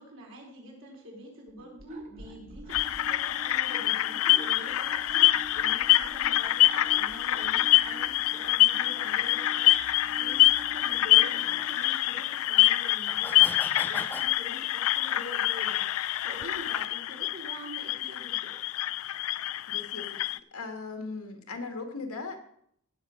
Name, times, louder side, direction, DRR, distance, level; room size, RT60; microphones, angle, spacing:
voice 1, 0.0-18.5, equal, 60° right, -1 dB, 4.3 m, -46 dB
sound 1, 1.5-11.7, right 1 dB, 35° right, 1.3 m, -47 dB
sound 2, 2.7-20.4, left 15 dB, 65° left, 0.3 m, -25 dB
sound 3, 8.6-8.7 9.2-9.3 10.3-10.4 11.6-11.7 12.1-12.2 12.9-14.3, left 2 dB, 10° left, 0.5 m, -39 dB
voice 2, 19.7-22.4, left 3 dB, 85° left, 4 dB, 1.9 m, -38 dB
16.5 x 6.7 x 5.0 m, 0.70 s
head